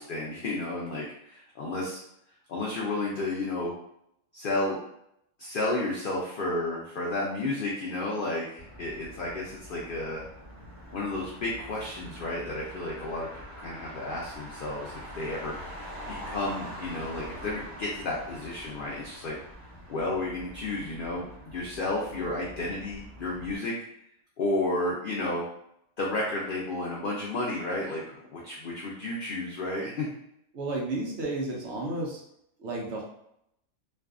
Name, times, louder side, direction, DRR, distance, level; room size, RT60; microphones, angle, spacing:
voice 1, 0.0-2.0 2.5-3.7 4.3-4.8 5.4-10.2 10.9-15.6 16.3-19.4 19.9-23.7 24.4-25.4 26.0-30.1, left 2 dB, 90° left, -4 dB, 0.4 m, -32 dB
Motor vehicle (road), 8.6-23.6, equal, ahead, 1.1 m, -44 dB
voice 2, 30.5-32.2 32.6-33.0, right 2 dB, 65° right, -2 dB, 0.8 m, -32 dB
2.6 x 2.3 x 2.3 m, 0.75 s
omnidirectional pair, 1.5 m